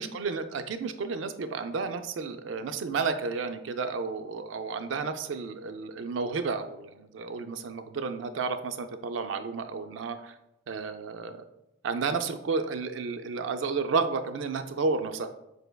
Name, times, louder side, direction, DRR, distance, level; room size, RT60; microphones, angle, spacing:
voice 1, 0.0-10.4 10.7-11.4 11.8-15.3, right 4 dB, 65° right, 9 dB, 0.4 m, -32 dB
5.4 x 3.3 x 2.2 m, 0.86 s
head